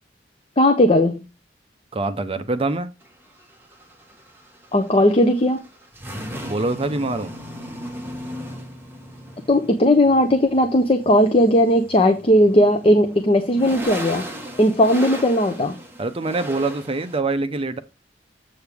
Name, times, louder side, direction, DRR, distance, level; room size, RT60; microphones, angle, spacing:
voice 1, 0.6-1.3 4.7-5.6 9.5-14.3 14.6-15.7, left 1 dB, 30° left, 0.7 m, -17 dB
voice 2, 1.9-2.9 6.5-7.3 16.0-17.8, right 2 dB, 30° right, 0.6 m, -24 dB
sound 1, 3.0-17.2, equal, 10° right, 1.4 m, -37 dB
7.9 x 6.6 x 3.5 m
head